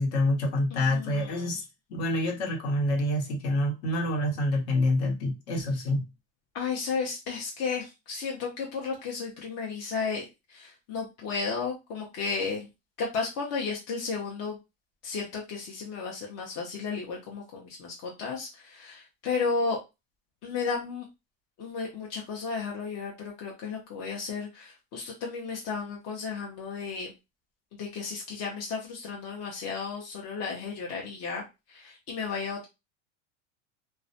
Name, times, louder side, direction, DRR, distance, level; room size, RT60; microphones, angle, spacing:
voice 1, 0.0-1.6 1.9-6.0, left 1 dB, 65° left, 1.0 m, -27 dB
voice 2, 0.7-1.6 6.5-12.7 13.0-14.6 15.0-19.8 20.4-21.0 21.6-27.1 27.7-32.6, left 5 dB, 45° left, 0.6 m, -33 dB
2.3 x 2.1 x 2.6 m
supercardioid pair, 120°, 38 cm